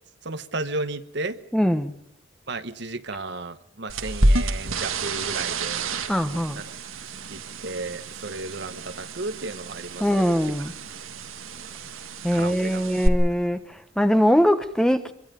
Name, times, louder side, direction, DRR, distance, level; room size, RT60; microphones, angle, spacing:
voice 1, 0.2-1.4 2.5-5.9 6.7-6.8 7.0-10.5 12.3-12.9, right 2 dB, 55° right, 1.2 m, -34 dB
voice 2, 1.5-1.9 6.1-6.6 10.0-10.7 12.2-15.1, equal, 5° left, 1.1 m, -22 dB
sound 1, 3.9-13.1, right 2 dB, 85° right, 1.8 m, -29 dB
25.0 x 23.0 x 5.2 m
head